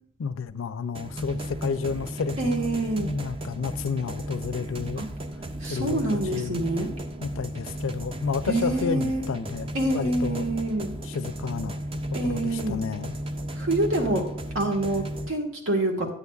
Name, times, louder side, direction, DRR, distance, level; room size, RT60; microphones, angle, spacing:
voice 1, 0.2-2.7 3.0-5.0 5.7-6.0 6.3-6.7 7.2-10.4 11.0-11.8 12.2-13.2, left 5 dB, 80° left, 14 dB, 0.4 m, -31 dB
sound 1, 0.9-15.3, right 1 dB, 25° right, 0.4 m, -34 dB
voice 2, 2.4-3.1 5.0-5.1 5.6-6.9 8.5-9.2 9.7-10.9 12.1-12.8 13.5-14.3 14.5-16.1, right 2 dB, 85° right, 1 dB, 1.5 m, -26 dB
9.6 x 8.1 x 2.4 m, 0.71 s
head